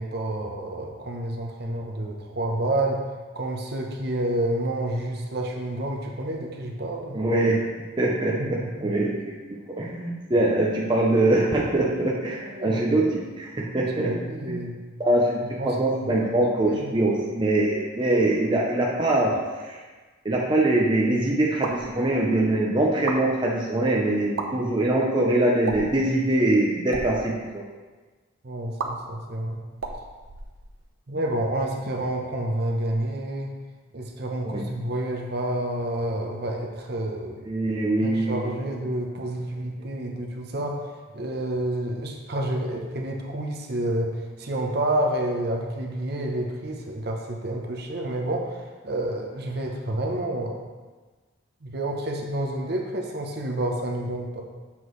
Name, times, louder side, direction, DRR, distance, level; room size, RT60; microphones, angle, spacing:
voice 1, 0.0-3.0 3.3-7.2 8.4-8.9 10.3-10.4 12.4-13.1 14.0-14.8 15.6-16.1 16.6-17.0 28.4-29.6 31.1-33.5 33.9-37.4 38.0-50.7 51.6-54.4, right 1 dB, 50° right, 1 dB, 0.8 m, -29 dB
voice 2, 7.1-7.6 8.0-14.1 14.5-14.6 15.0-19.8 20.2-27.6 34.4-34.6 37.5-38.5, right 1 dB, 25° right, -3 dB, 0.6 m, -23 dB
sound 1, 21.6-21.9 22.9-23.2 24.2-24.5 25.6-26.0 26.8-27.1 28.8-28.9 29.8-30.9, right 4 dB, 85° right, 0.7 m, -33 dB
7.2 x 6.0 x 3.2 m, 1.3 s
head